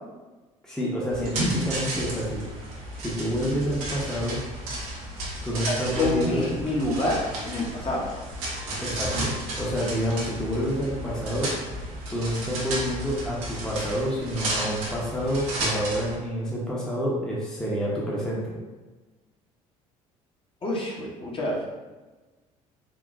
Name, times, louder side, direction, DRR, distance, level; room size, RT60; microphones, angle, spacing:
voice 1, 0.6-2.4 3.0-4.4 5.4-6.4 8.8-9.3 9.6-11.5 12.1-18.6, equal, 5° left, -5 dB, 0.8 m, -28 dB
sound 1, 1.1-16.2, right 1 dB, 75° right, 0.8 m, -33 dB
voice 2, 5.6-7.2 7.5-8.0 20.6-21.6, left 1 dB, 30° left, -3 dB, 0.9 m, -27 dB
3.7 x 2.6 x 2.5 m, 1.2 s
hypercardioid pair, 55°, 18 cm